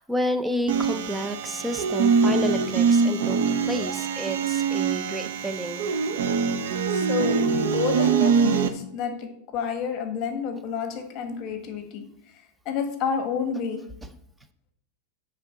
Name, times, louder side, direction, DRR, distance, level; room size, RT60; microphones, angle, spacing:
voice 1, 0.0-3.4 3.6-6.0, equal, 5° right, 9 dB, 0.5 m, -30 dB
sound 1, 0.7-8.7, right 5 dB, 80° right, 0.7 m, -23 dB
voice 2, 6.9-12.1 12.6-13.8, left 6 dB, 40° left, 6 dB, 1.4 m, -30 dB
8.2 x 3.6 x 5.7 m, 0.69 s
supercardioid pair, 145°, 0 cm